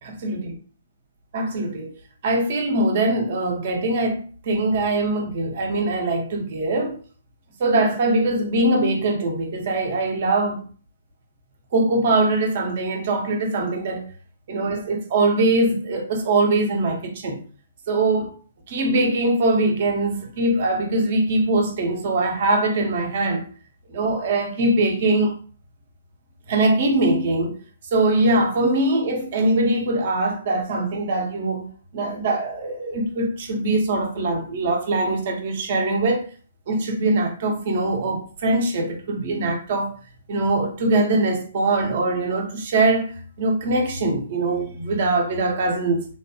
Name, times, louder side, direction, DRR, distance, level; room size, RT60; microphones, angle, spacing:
voice 1, 0.0-0.5 1.3-1.9 2.2-7.0 7.6-10.7 11.7-14.1 14.5-17.4 17.9-18.3 18.7-23.5 23.9-25.4 26.5-27.6 27.9-36.3 36.7-39.9 40.3-43.1 43.4-46.1, right 2 dB, 50° right, 0.8 m, -22 dB
3.2 x 2.2 x 2.8 m
hypercardioid pair, 135°, 0 cm